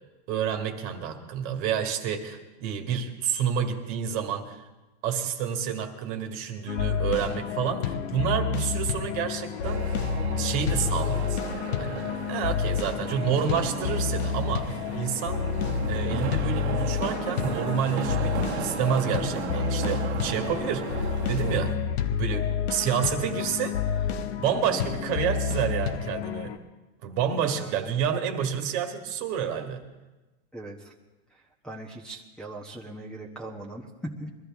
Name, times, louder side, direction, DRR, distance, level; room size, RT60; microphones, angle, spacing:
voice 1, 0.3-4.7 5.0-9.8 10.4-12.0 12.3-15.4 15.9-21.8 22.2-24.1 24.4-26.6 27.0-29.8, right 8 dB, 45° right, 6 dB, 1.7 m, -29 dB
sound 1, 6.7-26.6, left 7 dB, 75° left, 1.2 m, -29 dB
sound 2, 9.6-21.7, right 9 dB, 85° right, 1.3 m, -36 dB
voice 2, 27.3-27.8 30.5-30.9 31.3-34.3, right 1 dB, ahead, -4 dB, 1.1 m, -40 dB
22.0 x 13.5 x 3.6 m, 1.1 s
supercardioid pair, 145°, 32 cm